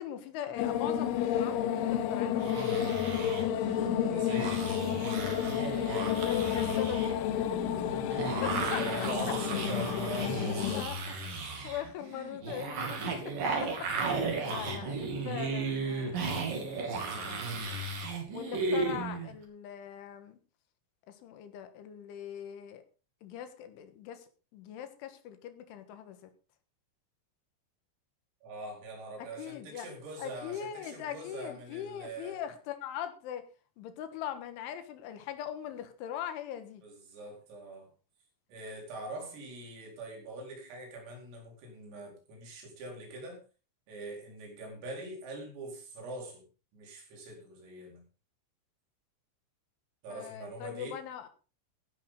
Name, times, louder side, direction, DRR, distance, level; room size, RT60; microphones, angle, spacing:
voice 1, 0.0-3.0 4.6-5.0 6.1-7.6 8.4-9.3 10.7-11.0 11.6-17.9 18.3-20.4 21.1-22.8 23.2-24.3 24.5-26.2 29.2-29.9 30.2-33.4 33.8-36.8 50.1-51.3, left 10 dB, 75° left, 9 dB, 3.7 m, -41 dB
sound 1, 0.6-10.8, left 10 dB, 90° left, 2.2 m, -31 dB
sound 2, 2.4-19.3, right 3 dB, 50° right, 3.9 m, -35 dB
voice 2, 4.0-6.6 8.5-10.9 14.3-14.9 28.4-32.4 36.8-37.9 38.5-43.4 43.9-46.4 46.7-48.0 50.0-51.0, right 2 dB, 90° right, 0 dB, 7.4 m, -43 dB
16.0 x 11.0 x 3.9 m, 0.35 s
omnidirectional pair, 5.8 m